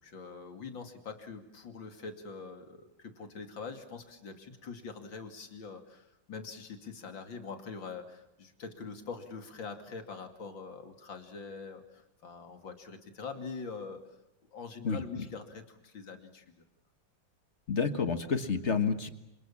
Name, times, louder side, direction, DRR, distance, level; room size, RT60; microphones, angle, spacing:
voice 1, 0.0-14.2 14.5-16.6, left 5 dB, 80° left, 6 dB, 3.3 m, -44 dB
voice 2, 14.8-15.3 17.7-19.1, left 5 dB, 40° left, 10 dB, 1.6 m, -30 dB
27.5 x 26.5 x 7.3 m, 0.86 s
omnidirectional pair, 2.1 m